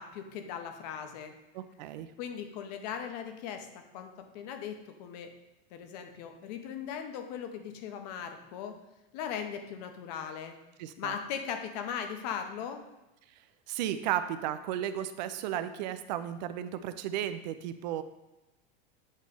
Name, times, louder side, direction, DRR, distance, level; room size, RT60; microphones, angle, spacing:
voice 1, 0.0-1.3 2.2-3.7 3.9-5.3 5.7-8.8 9.1-10.5 11.0-12.8, left 8 dB, 40° left, 6 dB, 0.8 m, -38 dB
voice 2, 1.5-2.1 10.8-11.1 13.7-18.0, right 11 dB, 45° right, 11 dB, 0.5 m, -34 dB
8.3 x 3.1 x 5.4 m, 0.99 s
supercardioid pair, 170°, 32 cm